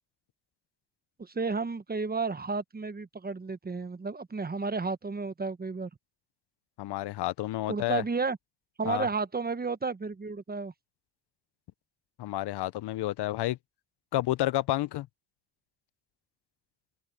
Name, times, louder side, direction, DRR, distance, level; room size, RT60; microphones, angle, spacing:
voice 1, 1.2-5.9 7.7-8.4 8.8-10.7, right 4 dB, 20° right, 1.1 m, -32 dB
voice 2, 6.8-8.0 8.9-9.1 12.2-13.6 14.1-15.1, left 15 dB, 75° left, 0.8 m, -30 dB
cardioid pair, 75°, 41 cm